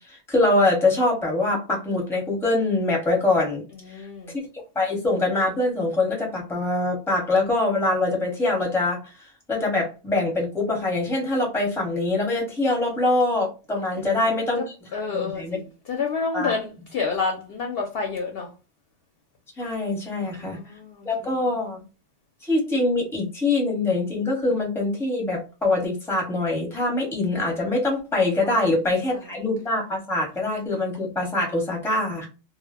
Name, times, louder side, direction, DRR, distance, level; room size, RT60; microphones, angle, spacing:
voice 1, 0.1-3.6 4.7-9.1 9.5-14.6 15.1-15.6 16.3-16.5 19.6-20.6 21.0-21.8 22.4-32.3, left 2 dB, 5° left, 0.7 m, -24 dB
voice 2, 3.7-4.3 14.0-14.6 14.9-18.5 20.2-21.6 28.4-28.6 29.1-29.2, left 4 dB, 60° left, 0.7 m, -30 dB
2.1 x 2.0 x 3.4 m
omnidirectional pair, 1.3 m